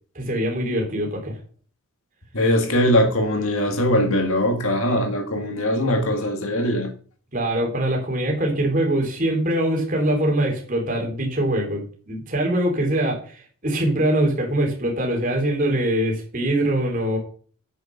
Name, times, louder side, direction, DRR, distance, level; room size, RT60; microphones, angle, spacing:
voice 1, 0.1-1.4 7.3-17.2, right 1 dB, 35° right, 3.2 m, -23 dB
voice 2, 2.3-6.9, left 1 dB, 70° left, 1.9 m, -21 dB
8.8 x 6.6 x 6.2 m
head